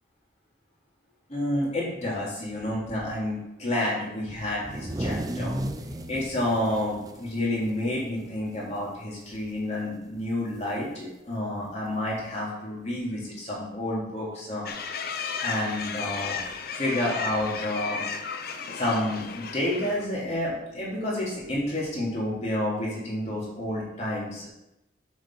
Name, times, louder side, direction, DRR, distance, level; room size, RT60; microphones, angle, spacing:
voice 1, 1.3-5.6 6.1-14.7 15.4-16.4 16.7-18.0 18.7-24.5, left 1 dB, 35° left, -5 dB, 3.3 m, -29 dB
sound 1, 4.5-8.3 8.6-8.8 9.1-9.6 10.7-10.8 11.8-11.9, right 1 dB, 20° right, 0.6 m, -34 dB
sound 2, 14.7-20.1, left 5 dB, 50° left, 0.7 m, -34 dB
7.7 x 6.5 x 6.1 m, 0.91 s
head